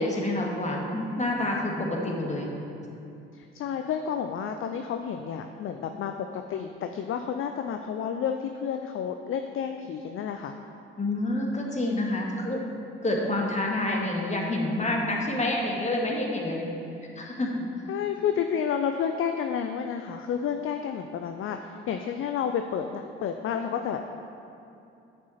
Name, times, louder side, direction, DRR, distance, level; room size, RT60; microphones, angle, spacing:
voice 1, 0.0-2.6 11.0-12.6 13.0-16.7 17.2-17.6, left 1 dB, 20° left, -1 dB, 1.8 m, -28 dB
voice 2, 3.3-10.5 17.9-24.1, left 7 dB, 40° left, 6 dB, 0.5 m, -30 dB
9.7 x 6.8 x 4.3 m, 2.8 s
hypercardioid pair, 50°, 32 cm